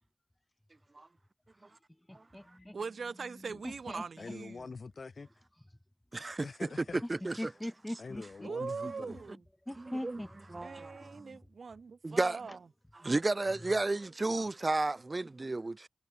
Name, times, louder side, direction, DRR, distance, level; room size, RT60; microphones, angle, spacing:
voice 1, 2.1-2.8 3.2-4.0 7.4-8.5 9.3-9.4 9.6-10.4 10.8-11.4, left 1 dB, 10° left, 6.5 m, -42 dB
voice 2, 2.7-4.7 8.4-9.4 10.6-12.6, right 5 dB, 90° right, 1.7 m, -41 dB
voice 3, 4.2-5.3 6.4-7.4 8.0-9.2, left 4 dB, 70° left, 3.2 m, -45 dB
voice 4, 6.1-6.5 7.1-7.4 8.8-8.9 10.0-10.2 10.5-11.1 12.0-12.4 13.0-15.9, right 2 dB, 40° right, 0.5 m, -32 dB
wide cardioid pair, 75°, 0 cm